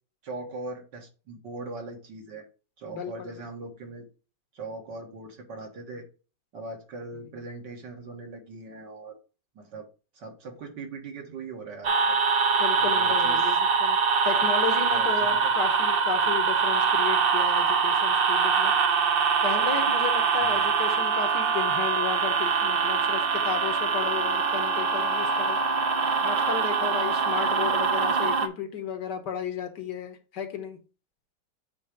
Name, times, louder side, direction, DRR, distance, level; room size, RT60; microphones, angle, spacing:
voice 1, 0.2-2.5 2.8-4.1 4.5-6.1 6.5-9.2 9.6-9.9 10.1-12.2 12.8-13.5 14.9-15.5 20.4-20.7, right 3 dB, 80° right, 2.2 m, -40 dB
voice 2, 2.9-3.5 12.6-14.0 14.3-18.7 19.4-25.8 26.2-30.8, left 6 dB, 75° left, 1.7 m, -33 dB
sound 1, 11.8-28.5, right 5 dB, 60° right, 0.5 m, -24 dB
8.3 x 3.0 x 5.0 m
omnidirectional pair, 1.9 m